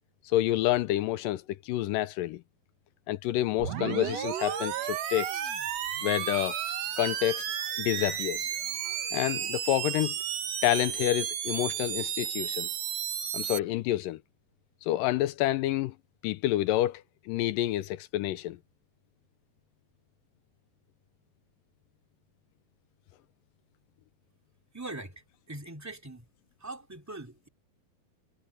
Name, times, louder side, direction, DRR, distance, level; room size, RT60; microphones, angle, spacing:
voice 1, 0.3-2.4 3.1-5.4 6.0-6.6 7.0-7.4 7.8-8.5 8.8-10.2 10.6-12.7 13.3-14.2 14.8-15.9 16.2-18.6, left 15 dB, 80° left, 2.1 m, -28 dB
sound 1, 3.6-13.6, right 9 dB, 60° right, 2.0 m, -33 dB
voice 2, 24.7-26.3 26.6-27.5, right 2 dB, 5° right, 1.8 m, -42 dB
omnidirectional pair, 4.2 m